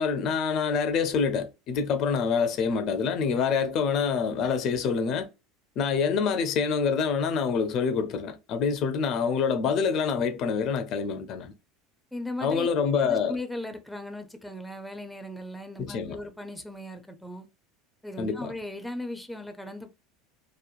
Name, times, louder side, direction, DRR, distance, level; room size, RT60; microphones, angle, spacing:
voice 1, 0.0-5.3 5.8-11.5 12.4-13.4 15.8-16.2 18.2-18.5, left 6 dB, 55° left, 0.5 m, -26 dB
voice 2, 12.1-12.7 13.0-17.5 18.0-20.0, left 1 dB, 5° left, 0.5 m, -37 dB
2.9 x 2.1 x 2.4 m
hypercardioid pair, 90°, 0 cm